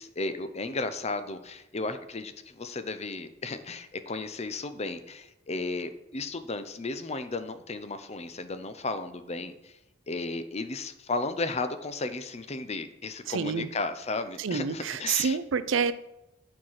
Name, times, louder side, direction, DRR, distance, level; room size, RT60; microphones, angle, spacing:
voice 1, 0.0-9.8 10.1-15.4, left 3 dB, 35° left, 0.7 m, -34 dB
voice 2, 13.3-13.7 14.4-15.9, right 6 dB, 80° right, 0.5 m, -28 dB
8.9 x 4.7 x 5.8 m
head